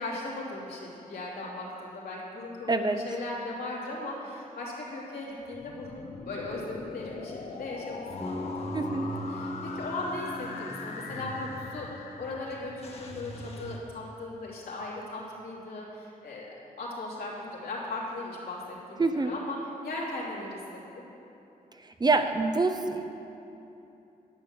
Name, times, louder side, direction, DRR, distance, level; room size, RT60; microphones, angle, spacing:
voice 1, 0.0-16.5 16.8-20.6 20.9-21.0, left 2 dB, 80° left, -5 dB, 3.1 m, -38 dB
sound 1, 5.4-13.3, left 4 dB, 60° left, 1.0 m, -42 dB
Car / Engine starting / Idling, 8.1-13.8, equal, 40° left, 1.4 m, -43 dB
Bass guitar, 8.2-12.2, left 1 dB, 5° left, 1.0 m, -40 dB
voice 2, 8.7-9.1 19.0-19.3 22.0-23.1, right 3 dB, 25° right, 7 dB, 0.6 m, -25 dB
10.5 x 8.4 x 7.4 m, 2.9 s
wide cardioid pair, 110°, 15 cm